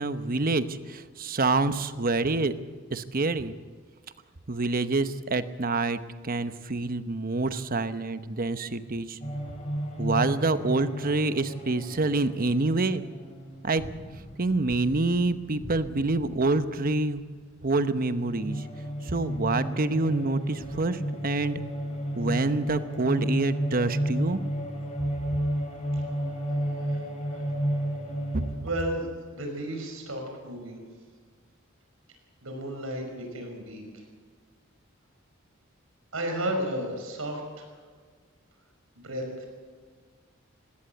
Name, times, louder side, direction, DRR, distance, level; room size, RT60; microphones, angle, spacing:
voice 1, 0.0-2.5 2.9-3.5 4.5-9.2 10.0-13.0 13.6-13.8 14.4-17.2 17.6-18.6 19.0-21.6 22.2-24.4 28.3-28.4, right 3 dB, 45° right, 11 dB, 0.9 m, -27 dB
sound 1, 9.2-17.4 17.7-28.6, right 1 dB, 35° left, 4.5 m, -33 dB
voice 2, 28.6-30.8 32.4-34.0 36.1-37.7 39.0-39.5, right 1 dB, 85° right, 3 dB, 5.6 m, -33 dB
19.5 x 17.0 x 8.0 m, 1.5 s
head